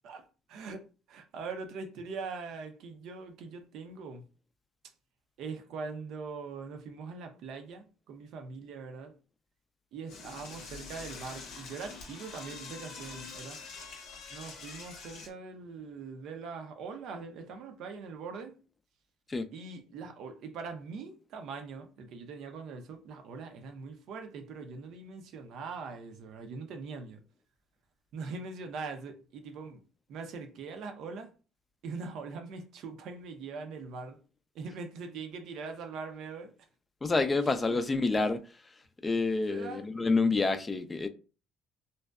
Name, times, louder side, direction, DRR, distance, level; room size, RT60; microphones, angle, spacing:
voice 1, 0.0-0.8 1.1-4.2 5.4-9.1 9.9-13.6 14.3-18.5 19.5-27.2 28.1-29.8 30.1-31.3 31.8-34.2 34.5-36.5 37.7-37.8 39.5-39.9, right 4 dB, 70° right, 0.4 m, -42 dB
Door / Toilet flush, 10.1-15.3, left 4 dB, 75° left, 0.7 m, -45 dB
voice 2, 37.0-38.4 39.0-41.1, left 3 dB, 25° left, 0.3 m, -28 dB
2.6 x 2.1 x 2.2 m
supercardioid pair, 75°, 0 cm